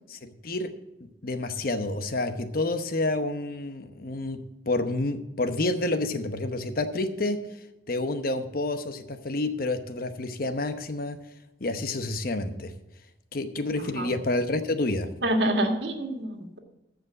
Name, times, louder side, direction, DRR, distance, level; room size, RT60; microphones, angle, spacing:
voice 1, 0.1-0.7 1.0-7.4 7.9-11.2 11.6-12.7 13.3-15.1, left 2 dB, 55° left, 9 dB, 0.9 m, -29 dB
voice 2, 15.2-16.6, right 1 dB, 75° right, 3 dB, 1.8 m, -27 dB
14.5 x 5.1 x 7.4 m, 0.95 s
head